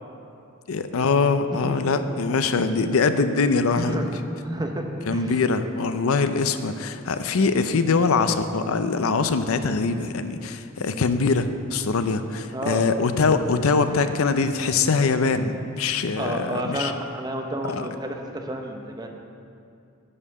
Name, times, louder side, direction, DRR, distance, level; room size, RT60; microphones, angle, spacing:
voice 1, 0.7-4.1 5.0-16.9 17.7-17.8, left 4 dB, 75° left, 10 dB, 0.5 m, -23 dB
voice 2, 3.8-4.1 4.4-5.3 12.5-12.9 14.0-14.1 16.2-19.1, right 1 dB, 20° right, 2 dB, 0.8 m, -30 dB
11.0 x 5.5 x 6.8 m, 2.5 s
head